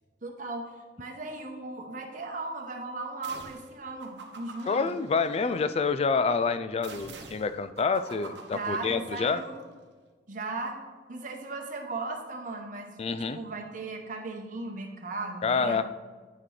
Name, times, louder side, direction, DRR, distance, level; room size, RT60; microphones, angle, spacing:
voice 1, 0.2-0.7 1.0-4.9 8.5-9.6 10.3-10.8 11.1-13.0 13.3-15.8, right 3 dB, 50° right, 2 dB, 1.0 m, -37 dB
sound 1, 3.2-3.7 4.0-5.8 6.8-9.4, right 4 dB, 80° right, 0.9 m, -47 dB
voice 2, 4.7-9.4 13.0-13.4 15.4-15.8, left 4 dB, 35° left, 12 dB, 0.3 m, -27 dB
9.1 x 5.9 x 3.3 m, 1.5 s
head